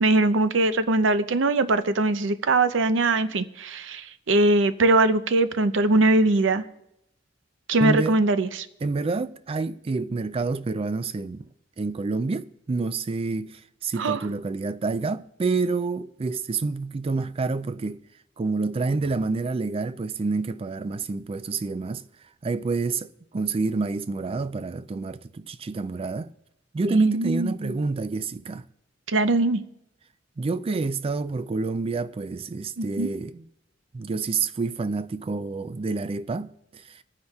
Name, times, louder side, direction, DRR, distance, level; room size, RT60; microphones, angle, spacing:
voice 1, 0.0-6.6 7.7-8.7 14.0-14.2 27.1-27.8 29.1-29.6 32.8-33.1, right 2 dB, 90° right, 0.6 m, -21 dB
voice 2, 7.8-8.2 8.8-11.5 11.8-18.0 18.4-22.0 22.4-26.3 26.7-28.7 30.4-33.5 33.9-37.0, right 3 dB, 30° right, 0.3 m, -28 dB
25.0 x 9.5 x 2.3 m
head